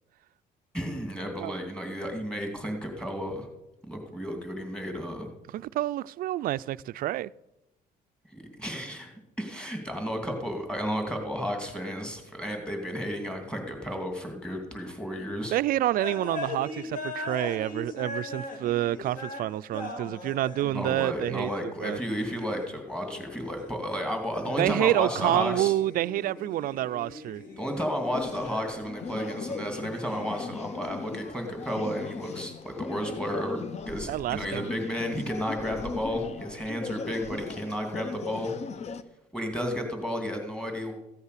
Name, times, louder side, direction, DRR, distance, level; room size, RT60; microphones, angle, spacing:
voice 1, 0.7-3.5 3.9-5.3 8.3-9.1 9.4-15.5 20.7-25.7 27.5-38.5 39.3-40.9, equal, 5° left, 2.6 m, -32 dB
voice 2, 5.5-7.3 15.5-22.0 24.6-27.4 34.1-34.7, right 14 dB, 60° right, 0.4 m, -28 dB
sound 1, 16.0-19.4 19.7-24.0 24.3-28.8 29.0-30.4, left 2 dB, 55° left, 3.2 m, -40 dB
sound 2, 28.1-39.0, left 5 dB, 40° left, 0.7 m, -39 dB
14.5 x 8.1 x 6.7 m
cardioid pair, 110°, 17 cm